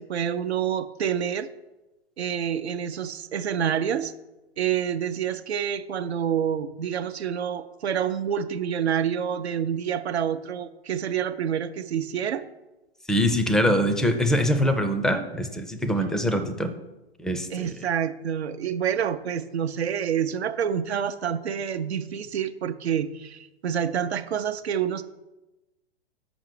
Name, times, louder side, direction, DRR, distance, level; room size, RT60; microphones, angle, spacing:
voice 1, 0.0-1.5 2.2-4.1 4.6-12.4 17.5-25.0, right 8 dB, 90° right, 8 dB, 0.6 m, -27 dB
voice 2, 13.1-16.7 17.2-17.7, equal, ahead, 8 dB, 0.4 m, -23 dB
6.1 x 5.8 x 6.7 m, 1.0 s
hypercardioid pair, 120°, 31 cm